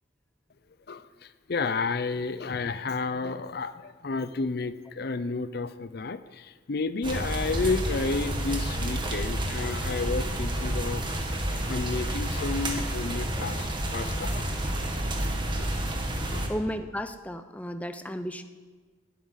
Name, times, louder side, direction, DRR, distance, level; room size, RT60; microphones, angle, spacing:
voice 1, 0.9-11.0 11.7-14.5 15.6-15.7 16.3-16.5, left 4 dB, 55° left, 13 dB, 0.6 m, -31 dB
sound 1, 7.0-16.5, right 1 dB, 25° right, 1.7 m, -30 dB
voice 2, 16.5-18.4, equal, 10° left, 9 dB, 0.6 m, -34 dB
11.5 x 9.2 x 9.7 m, 1.4 s
head